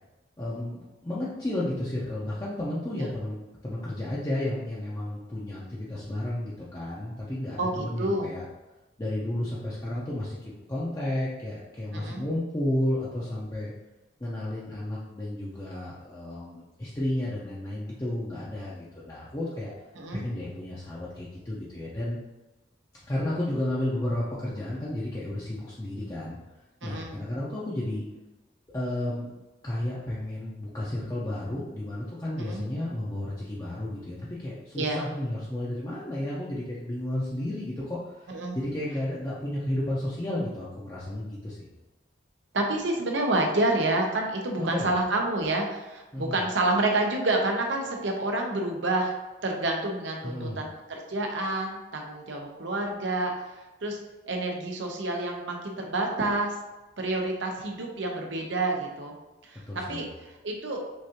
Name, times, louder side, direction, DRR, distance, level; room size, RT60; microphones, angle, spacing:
voice 1, 0.4-3.3 3.6-8.4 9.0-13.7 14.2-19.7 20.1-22.2 23.1-26.4 26.8-28.0 28.7-29.3 29.6-41.7 44.6-44.9 46.1-46.4 50.2-50.6 59.7-60.1, left 1 dB, 20° left, -7 dB, 0.6 m, -32 dB
voice 2, 7.6-8.3 11.9-12.2 20.0-20.2 26.8-27.2 32.4-32.6 34.8-35.0 38.3-38.6 42.5-49.2 49.4-53.3 53.8-54.0 54.3-56.5 57.0-59.1 59.4-59.6 59.9-60.1 60.4-60.8, right 2 dB, 80° right, 1 dB, 0.8 m, -28 dB
6.2 x 2.6 x 2.8 m, 1.1 s
head